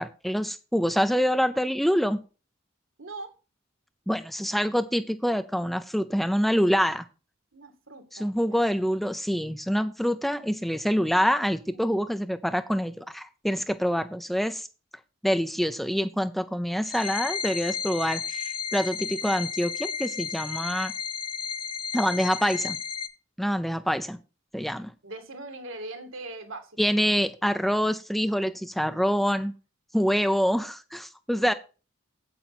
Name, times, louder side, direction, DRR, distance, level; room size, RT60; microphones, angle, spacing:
voice 1, 0.0-2.2 4.1-7.0 8.1-14.7 15.2-20.9 21.9-22.8 23.4-24.2 24.5-24.9 26.8-29.5 29.9-31.5, equal, ahead, 10 dB, 0.5 m, -26 dB
voice 2, 3.0-3.3 7.5-8.4 11.7-12.0 25.0-26.7, right 2 dB, 75° right, 7 dB, 2.4 m, -40 dB
sound 1, 16.8-23.1, left 7 dB, 25° left, 1.1 m, -33 dB
8.8 x 8.2 x 4.2 m, 0.32 s
head